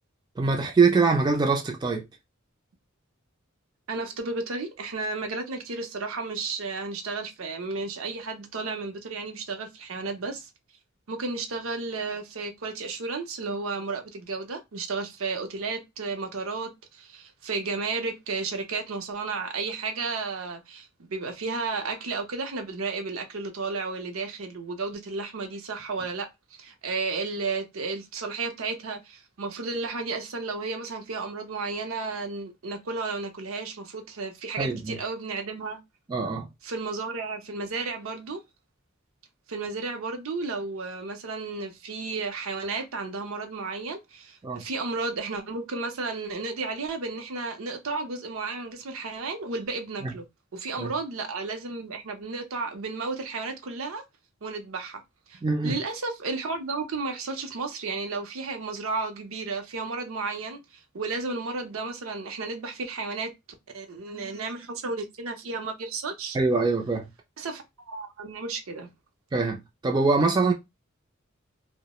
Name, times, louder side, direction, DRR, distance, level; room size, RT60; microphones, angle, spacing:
voice 1, 0.4-2.0 34.6-35.0 36.1-36.5 44.4-44.6 50.0-50.1 50.8-50.9 55.4-55.8 66.3-67.1 69.3-70.5, right 4 dB, 20° right, 0.3 m, -23 dB
voice 2, 3.9-10.5 11.1-26.3 26.6-35.8 36.6-38.4 39.5-50.3 50.5-54.0 54.4-55.0 55.3-63.3 63.7-66.4 67.4-68.9, right 3 dB, 70° right, 0.6 m, -33 dB
2.2 x 2.0 x 2.9 m
head